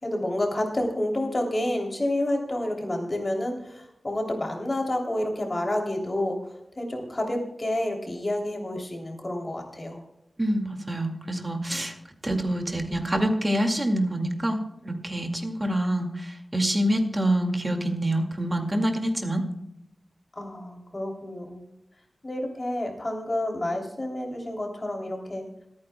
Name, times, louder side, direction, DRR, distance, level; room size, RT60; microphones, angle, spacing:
voice 1, 0.0-6.4 6.7-10.0 20.3-21.6 22.2-25.4, left 1 dB, 35° left, 1 dB, 3.0 m, -29 dB
voice 2, 10.4-11.9 12.2-19.4, right 1 dB, 25° right, 4 dB, 2.1 m, -26 dB
26.5 x 9.5 x 2.3 m, 0.86 s
wide cardioid pair, 90°, 0 cm